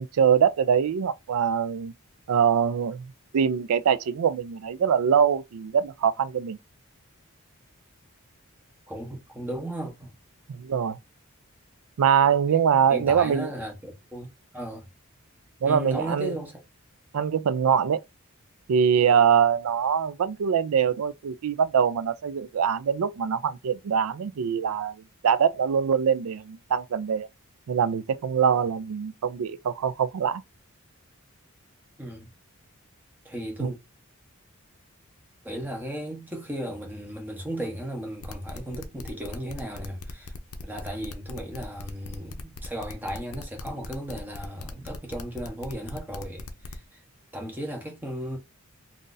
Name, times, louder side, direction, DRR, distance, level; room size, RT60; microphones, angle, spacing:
voice 1, 0.0-1.9 2.3-6.6 10.5-11.0 12.0-13.5 15.6-16.3 17.1-18.0 18.7-27.3 27.7-30.4 33.6-33.7, right 7 dB, 75° right, 0.4 m, -23 dB
voice 2, 8.9-10.2 12.5-12.6 12.9-14.3 14.5-14.9 15.6-16.6 32.0-32.3 33.2-33.8 35.4-40.3 40.6-47.0 47.3-48.4, right 1 dB, 10° right, 0.8 m, -35 dB
sound 1, 38.2-46.8, left 3 dB, 70° left, 0.5 m, -40 dB
2.6 x 2.4 x 3.8 m
head